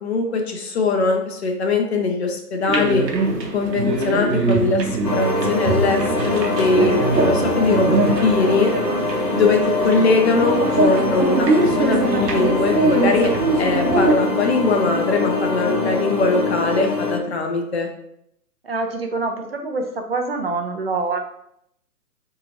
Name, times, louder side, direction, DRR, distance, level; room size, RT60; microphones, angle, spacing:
voice 1, 0.0-3.0 3.5-8.7 9.3-13.3 13.6-17.9, left 3 dB, 40° left, 4 dB, 0.6 m, -21 dB
sound 1, 2.7-14.2, right 3 dB, 85° right, 0.8 m, -22 dB
sound 2, 5.0-17.2, left 2 dB, 75° left, 1.2 m, -24 dB
voice 2, 18.6-21.2, right 3 dB, 40° right, 4 dB, 0.4 m, -25 dB
2.8 x 2.5 x 4.2 m, 0.75 s
figure-of-eight pair, 135°, 49 cm